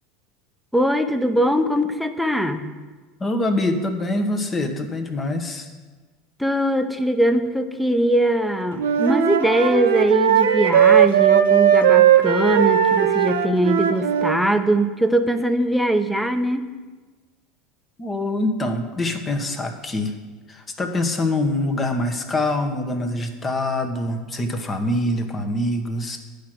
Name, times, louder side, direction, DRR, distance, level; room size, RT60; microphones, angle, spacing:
voice 1, 0.7-2.7 6.4-16.7, right 1 dB, ahead, 8 dB, 0.8 m, -21 dB
voice 2, 3.2-5.7 18.0-20.1 20.5-26.2, left 1 dB, 25° left, 6 dB, 1.3 m, -24 dB
Wind instrument woodwind instrument, 8.8-14.4, right 9 dB, 80° right, 0.6 m, -17 dB
10.0 x 5.0 x 6.1 m, 1.3 s
hypercardioid pair, 85°, 0 cm